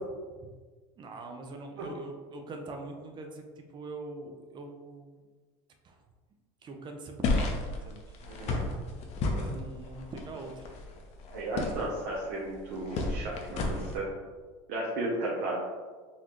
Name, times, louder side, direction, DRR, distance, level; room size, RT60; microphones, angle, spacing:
voice 1, 1.0-5.1 5.8-6.0 6.6-8.0 9.2-10.7, right 2 dB, 35° right, 3 dB, 0.6 m, -42 dB
sound 1, 7.2-14.0, left 2 dB, 50° left, 0.7 m, -33 dB
voice 2, 8.3-8.6 11.3-14.1 14.7-15.6, right 2 dB, 70° right, -5 dB, 0.8 m, -34 dB
4.1 x 2.5 x 3.0 m, 1.4 s
supercardioid pair, 105°, 14 cm